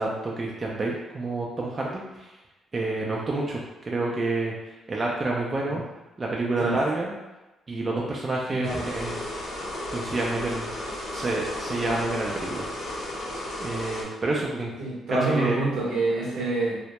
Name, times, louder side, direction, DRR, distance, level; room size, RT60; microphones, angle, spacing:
voice 1, 0.0-2.3 2.7-5.8 6.2-7.1 7.7-9.2 9.9-10.7 11.1-12.7 13.6-14.7 15.1-15.6, right 2 dB, 35° right, -3 dB, 0.4 m, -28 dB
voice 2, 8.5-8.9 14.8-16.8, right 2 dB, 85° right, -5 dB, 0.8 m, -27 dB
sound 1, 8.6-14.0, left 1 dB, 70° left, 0.7 m, -34 dB
2.1 x 2.0 x 2.8 m, 1.0 s
cardioid pair, 90°, 0 cm